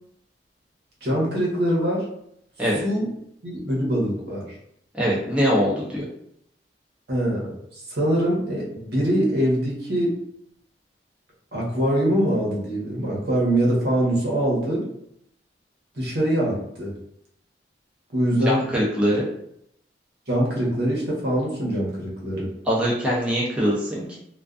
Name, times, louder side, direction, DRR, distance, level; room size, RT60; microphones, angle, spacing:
voice 1, 1.0-2.1 2.8-3.1 3.4-4.4 7.1-7.5 7.9-10.2 11.5-14.9 16.0-16.9 18.1-18.7 20.3-22.5, right 1 dB, 65° right, -4 dB, 0.9 m, -23 dB
voice 2, 4.9-6.1 18.5-19.3 22.7-24.2, equal, 5° right, -6 dB, 0.5 m, -22 dB
2.4 x 2.3 x 2.3 m, 0.72 s
head